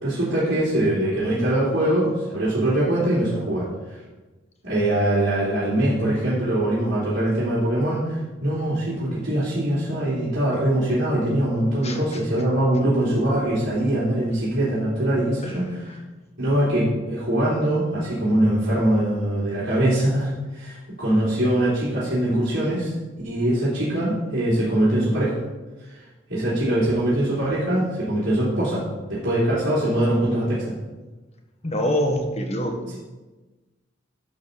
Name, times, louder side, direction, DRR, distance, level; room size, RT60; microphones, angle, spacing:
voice 1, 0.0-4.0 4.6-15.9 16.4-22.9 23.2-25.4 25.9-26.0 26.3-28.8 29.1-30.7, right 1 dB, 70° right, -11 dB, 3.3 m, -22 dB
voice 2, 11.8-12.2 15.4-15.5 15.8-16.0 31.6-32.9, equal, 35° left, 3 dB, 1.3 m, -26 dB
12.0 x 4.2 x 6.8 m, 1.2 s
head